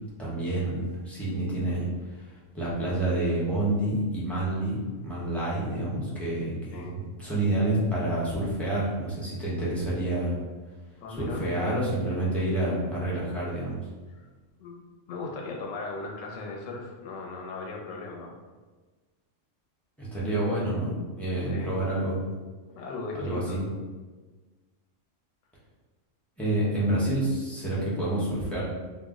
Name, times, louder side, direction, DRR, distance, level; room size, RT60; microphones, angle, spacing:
voice 1, 0.2-2.3 2.5-10.4 11.2-13.8 20.0-22.2 23.2-23.6 26.4-28.6, right 1 dB, ahead, -9 dB, 0.3 m, -28 dB
voice 2, 11.0-11.5 14.1-14.3 14.6-18.3 21.5-21.8 22.7-23.6, left 3 dB, 80° left, -1 dB, 1.0 m, -37 dB
2.4 x 2.0 x 3.5 m, 1.3 s
omnidirectional pair, 1.3 m